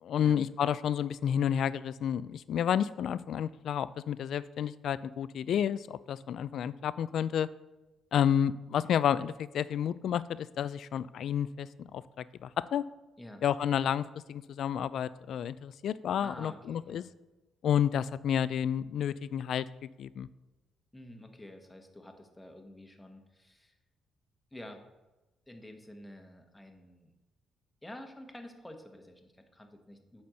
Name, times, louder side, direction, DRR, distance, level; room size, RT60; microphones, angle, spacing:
voice 1, 0.0-7.5 8.1-12.8 13.4-17.0 17.6-20.3, left 9 dB, 70° left, 17 dB, 0.3 m, -30 dB
voice 2, 16.2-17.1 20.9-23.8 24.5-24.8 25.5-27.1 27.8-30.2, left 1 dB, 10° left, 4 dB, 1.2 m, -49 dB
8.6 x 4.4 x 6.4 m, 1.1 s
cardioid pair, 90°, 0 cm